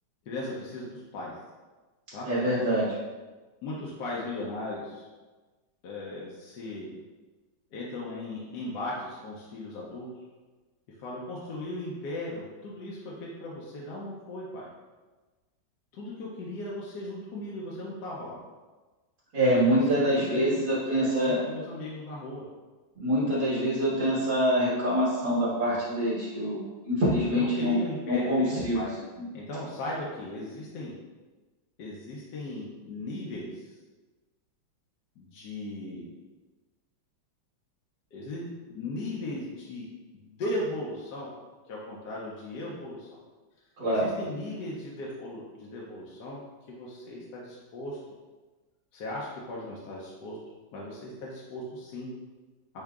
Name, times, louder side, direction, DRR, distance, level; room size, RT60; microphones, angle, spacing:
voice 1, 0.3-1.4 2.1-2.3 3.6-5.1 5.8-6.9 7.7-10.1 11.0-14.7 15.9-18.4 19.5-20.6 21.0-22.4 27.3-28.9 29.3-30.9 31.8-33.7 35.2-36.1 38.1-39.9 40.1-41.3 41.7-43.1 43.9-46.4 46.7-48.0 48.9-50.4 50.7-52.1, left 1 dB, 65° left, -5 dB, 1.1 m, -37 dB
voice 2, 2.3-2.9 19.3-21.4 23.0-27.8 28.1-28.8 43.8-44.1, equal, 55° right, -10 dB, 2.1 m, -25 dB
8.0 x 2.8 x 2.4 m, 1.3 s
omnidirectional pair, 2.1 m